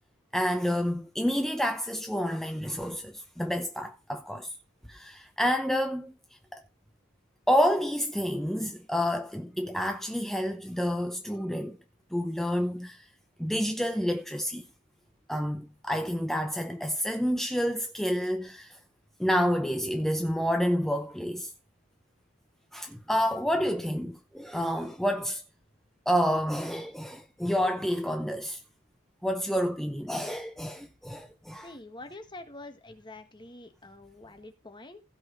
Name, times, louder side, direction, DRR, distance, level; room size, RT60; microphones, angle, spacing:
voice 1, 0.3-4.5 4.9-6.1 6.5-6.6 7.5-11.8 12.1-13.1 13.4-14.6 15.3-18.8 19.2-21.5 22.7-25.4 26.1-28.6 29.2-31.7, equal, ahead, 0.7 m, -29 dB
voice 2, 31.6-35.0, left 2 dB, 25° left, 1.6 m, -46 dB
16.0 x 5.7 x 5.0 m
head